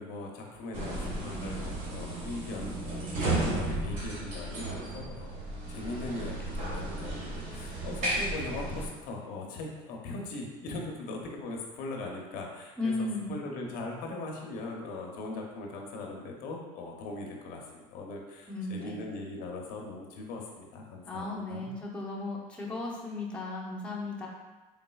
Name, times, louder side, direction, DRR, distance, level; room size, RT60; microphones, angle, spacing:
voice 1, 0.0-21.7, left 2 dB, 70° left, 0 dB, 0.7 m, -40 dB
sound 1, 0.7-8.9, right 2 dB, 55° right, 1.3 m, -34 dB
voice 2, 12.8-13.4 18.5-19.0 21.1-24.3, left 2 dB, 5° left, -4 dB, 0.6 m, -35 dB
4.1 x 3.7 x 2.3 m, 1.2 s
cardioid pair, 135°, 15 cm